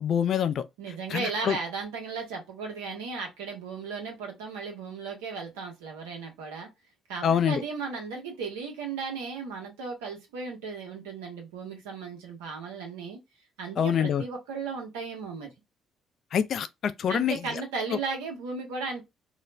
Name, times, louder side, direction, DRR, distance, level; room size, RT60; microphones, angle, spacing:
voice 1, 0.0-0.7 1.1-1.6 7.2-7.6 13.8-14.2 16.3-17.4, left 8 dB, 60° left, 0.3 m, -25 dB
voice 2, 0.8-6.7 7.1-13.2 13.6-15.5 17.1-19.0, right 4 dB, 85° right, 0.9 m, -35 dB
2.4 x 2.0 x 3.1 m
hypercardioid pair, 55°, 0 cm